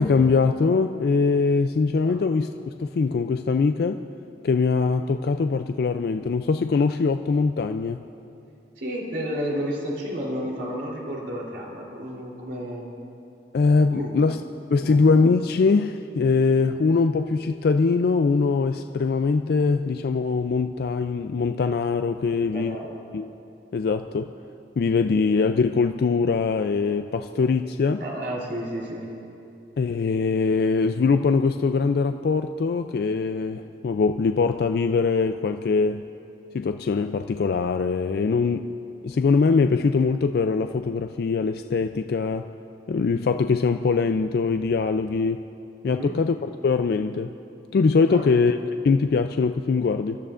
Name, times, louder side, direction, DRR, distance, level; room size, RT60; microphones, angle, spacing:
voice 1, 0.0-2.5 2.8-4.0 4.4-8.0 13.5-14.4 14.7-22.8 23.1-23.3 23.7-24.3 24.8-28.0 29.8-36.1 36.5-38.7 39.0-42.5 42.9-45.4 45.8-47.3 47.7-50.2, left 4 dB, 60° left, 8 dB, 0.3 m, -22 dB
voice 2, 8.8-12.9 13.9-14.2 14.8-15.0 22.3-23.0 28.0-29.1 45.9-46.1 48.0-48.3, equal, 85° right, -3 dB, 3.3 m, -32 dB
28.5 x 13.0 x 2.5 m, 2.7 s
head